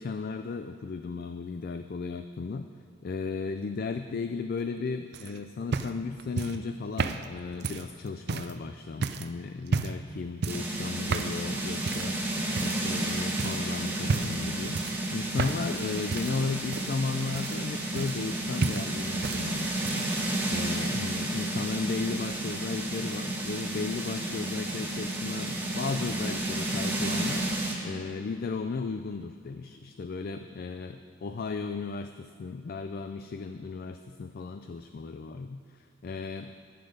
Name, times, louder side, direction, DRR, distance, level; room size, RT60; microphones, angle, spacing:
voice 1, 0.0-2.7 3.0-12.2 12.6-20.1 20.5-36.5, left 4 dB, 45° left, 8 dB, 0.3 m, -35 dB
sound 1, 5.1-8.6 9.0-9.3 9.7-10.1 10.4-10.7 11.1-11.4 11.9-12.2 12.6-13.1 13.4-13.6 14.0-14.4 14.7-15.8 16.1-18.4 18.6-19.4 19.7-20.2 21.1-21.2, right 4 dB, 50° right, 0.4 m, -32 dB
sound 2, 10.5-27.7, right 1 dB, 10° right, 1.3 m, -32 dB
10.5 x 10.0 x 5.1 m, 2.6 s
head